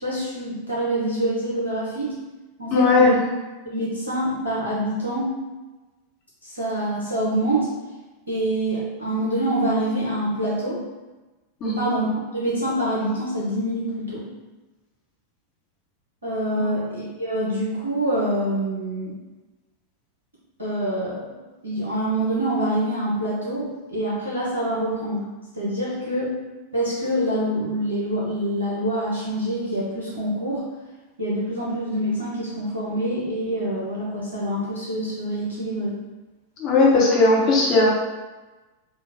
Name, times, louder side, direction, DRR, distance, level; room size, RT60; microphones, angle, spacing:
voice 1, 0.0-2.1 2.6-3.2 3.6-5.3 6.4-7.7 8.3-10.8 11.6-14.2 16.2-19.1 20.6-21.4 21.6-25.2 25.5-26.3 26.7-30.6 31.2-36.0, right 1 dB, 80° right, -6 dB, 0.9 m, -26 dB
voice 2, 2.7-3.1 11.6-11.9 16.6-16.7 36.6-37.9, left 3 dB, 35° left, -4 dB, 1.0 m, -17 dB
3.3 x 2.4 x 3.5 m, 1.2 s
figure-of-eight pair, 90°, 0 cm